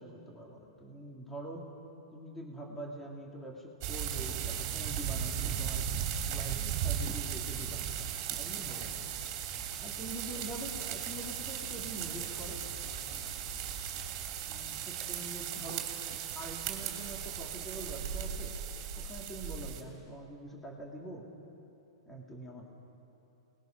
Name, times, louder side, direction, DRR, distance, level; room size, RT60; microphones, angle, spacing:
voice 1, 0.0-1.7 2.1-6.6 6.8-7.8 8.3-9.0 9.8-12.6 14.5-15.9 16.3-18.5 19.0-21.3 22.1-22.7, right 1 dB, 5° left, -2 dB, 2.6 m, -44 dB
sound 1, 3.8-19.8, right 9 dB, 35° right, 3.1 m, -37 dB
Waves surf, 7.4-14.8, left 1 dB, 55° left, 5.4 m, -52 dB
29.0 x 20.0 x 6.0 m, 3.0 s
hypercardioid pair, 165°, 3 cm